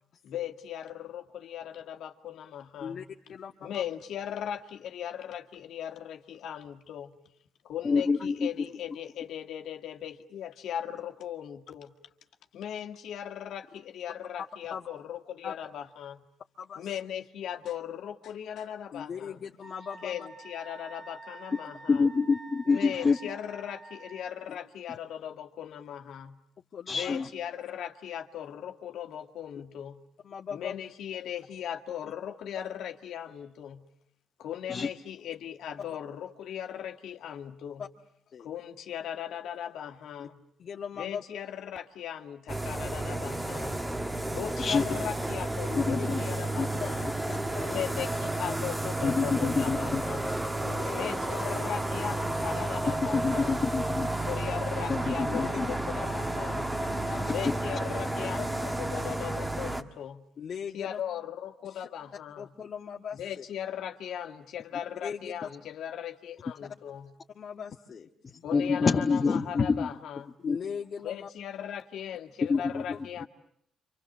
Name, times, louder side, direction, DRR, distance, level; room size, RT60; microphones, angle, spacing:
voice 1, 0.2-3.1 3.6-7.2 7.6-11.9 12.5-16.2 16.8-19.4 20.0-22.1 22.7-26.4 26.9-30.0 30.5-33.9 34.4-37.9 38.4-40.5 41.0-43.8 44.3-47.1 47.6-50.4 50.9-53.6 54.3-56.7 57.3-60.3 60.7-62.5 63.1-67.1 68.4-70.4 71.0-73.2, left 9 dB, 80° left, 5 dB, 2.0 m, -38 dB
voice 2, 2.8-3.9 14.7-14.8 15.4-15.5 16.6-16.9 18.9-20.3 26.7-27.2 30.2-30.8 32.0-32.1 38.3-38.5 40.2-40.3 40.6-41.2 45.7-46.4 46.8-47.9 48.4-48.6 50.6-51.2 52.6-52.7 53.4-53.5 55.2-55.4 56.8-57.4 58.4-58.5 60.4-61.0 61.8-61.9 62.4-63.4 64.7-65.5 67.4-68.4 70.4-71.3 72.9-73.2, left 7 dB, 55° left, -2 dB, 1.7 m, -40 dB
voice 3, 7.8-8.5 21.9-23.2 26.9-27.3 34.7-34.9 44.6-44.8 45.8-46.2 46.6-46.7 49.0-50.0 53.1-54.1 54.9-55.6 57.4-57.5 68.5-69.9 70.5-70.6 72.5-72.8, left 4 dB, 35° left, 3 dB, 1.3 m, -26 dB
Wind instrument woodwind instrument, 19.6-24.5, right 3 dB, 40° right, 2.5 m, -48 dB
sound 1, 42.5-59.8, right 1 dB, 15° right, 1.9 m, -32 dB
29.5 x 26.5 x 7.4 m, 0.72 s
cardioid pair, 90°, 0 cm